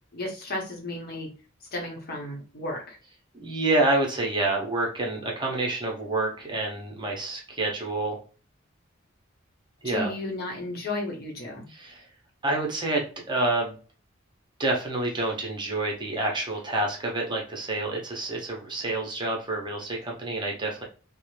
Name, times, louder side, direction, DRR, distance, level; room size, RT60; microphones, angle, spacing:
voice 1, 0.1-1.3 1.7-3.0 9.8-11.7, left 2 dB, 50° left, 0 dB, 0.9 m, -33 dB
voice 2, 3.3-8.2 9.8-10.1 11.7-12.1 12.4-13.8 14.6-20.8, right 2 dB, 25° right, 0 dB, 0.7 m, -28 dB
2.5 x 2.1 x 3.1 m, 0.37 s
head